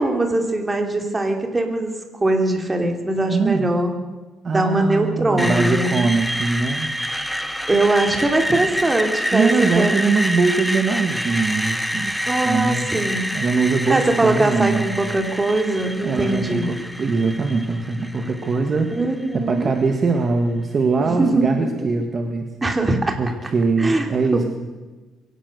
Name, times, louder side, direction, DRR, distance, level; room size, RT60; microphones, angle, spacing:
voice 1, 0.0-3.9 4.5-6.0 7.7-9.9 12.3-13.3 13.9-16.7 18.9-19.7 21.0-21.7 22.6-23.1 23.8-24.1 24.3-24.5, right 2 dB, 15° right, 4 dB, 3.0 m, -21 dB
voice 2, 3.3-3.7 4.4-6.9 9.3-12.1 12.4-12.9 13.3-14.9 16.0-18.9 19.3-22.5 23.2-24.5, right 4 dB, 35° right, 4 dB, 1.7 m, -22 dB
Screech, 5.4-19.3, equal, ahead, 1.0 m, -27 dB
23.0 x 17.5 x 6.9 m, 1.2 s
cardioid pair, 145°, 0 cm